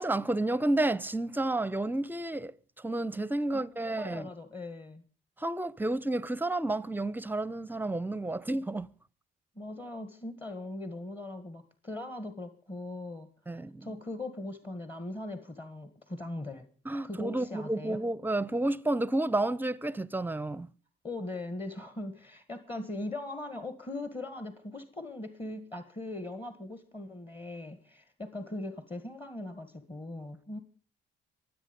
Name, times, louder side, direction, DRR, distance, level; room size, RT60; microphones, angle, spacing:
voice 1, 0.0-4.3 5.4-8.9 13.5-14.0 16.9-20.7, right 2 dB, 10° right, 0.6 m, -31 dB
voice 2, 3.8-5.0 9.5-16.7 17.0-18.0 21.0-30.6, left 2 dB, 25° left, 1.7 m, -40 dB
24.0 x 8.1 x 5.2 m
cardioid pair, 90°, 20 cm